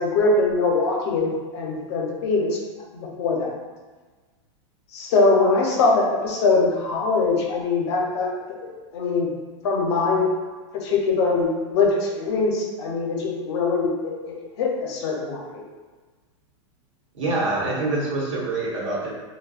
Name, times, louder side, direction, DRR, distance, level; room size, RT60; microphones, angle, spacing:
voice 1, 0.0-2.5 2.9-3.5 4.9-8.3 8.6-9.3 9.6-10.3 10.7-15.6, left 3 dB, 60° left, -1 dB, 0.6 m, -22 dB
voice 2, 17.1-19.1, right 2 dB, 85° right, -5 dB, 0.9 m, -25 dB
2.6 x 2.2 x 2.3 m, 1.4 s
supercardioid pair, 145°, 16 cm